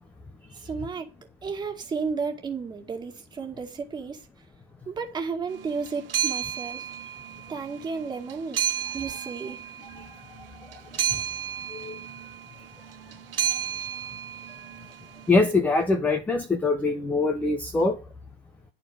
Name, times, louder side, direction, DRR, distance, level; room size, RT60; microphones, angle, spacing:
voice 1, 0.5-1.1 1.4-4.3 4.9-6.9 7.5-8.6 8.9-9.7, right 5 dB, 15° right, 2.2 m, -33 dB
sound 1, 5.5-15.5, right 10 dB, 65° right, 1.0 m, -32 dB
voice 2, 15.3-18.0, left 3 dB, 5° left, 0.6 m, -23 dB
11.0 x 4.6 x 7.5 m
figure-of-eight pair, 120°, 30 cm